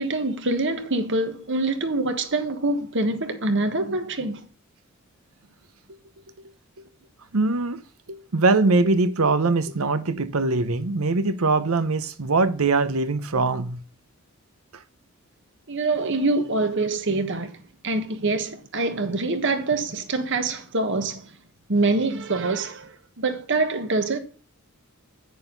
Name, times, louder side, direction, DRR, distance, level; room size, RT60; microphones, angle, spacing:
voice 1, 0.0-4.4 15.7-17.6 17.8-21.3 21.7-24.2, right 2 dB, 60° right, 1.4 m, -25 dB
voice 2, 7.3-7.8 8.1-13.8, right 3 dB, 80° right, 0.8 m, -22 dB
9.0 x 6.7 x 3.9 m
head